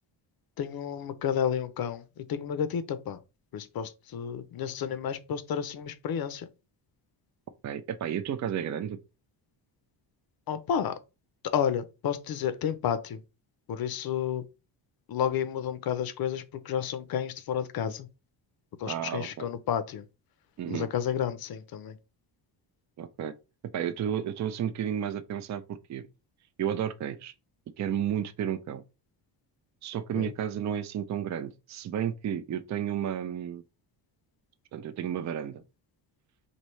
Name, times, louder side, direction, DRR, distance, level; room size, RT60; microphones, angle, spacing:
voice 1, 0.6-3.2 3.5-6.5 10.5-11.0 11.4-13.2 13.7-14.4 15.1-18.1 18.8-20.0 20.7-22.0 30.2-30.3, left 8 dB, 55° left, 0.6 m, -31 dB
voice 2, 7.6-9.0 18.9-19.5 20.6-20.9 23.0-23.3 23.7-26.1 26.6-27.3 27.8-28.8 29.8-33.6 34.7-35.6, right 9 dB, 40° right, 0.4 m, -32 dB
4.5 x 2.7 x 3.1 m
cardioid pair, 140°, 45 cm